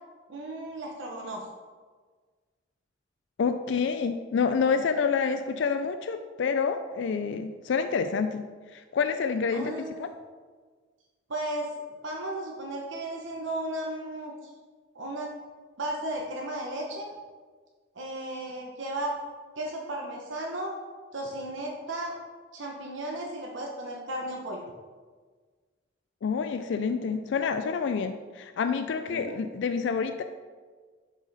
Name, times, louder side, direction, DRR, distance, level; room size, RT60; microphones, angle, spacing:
voice 1, 0.3-1.4 9.5-10.1 11.3-11.7 12.0-14.3 14.9-15.3 15.8-17.1 17.9-19.2 19.6-20.7 21.1-22.2 22.5-24.6 29.1-29.4, right 1 dB, 85° right, 0 dB, 0.9 m, -34 dB
voice 2, 3.4-8.5 8.7-10.1 26.2-30.2, left 5 dB, 75° left, 8 dB, 0.3 m, -28 dB
7.5 x 4.9 x 4.0 m, 1.5 s
head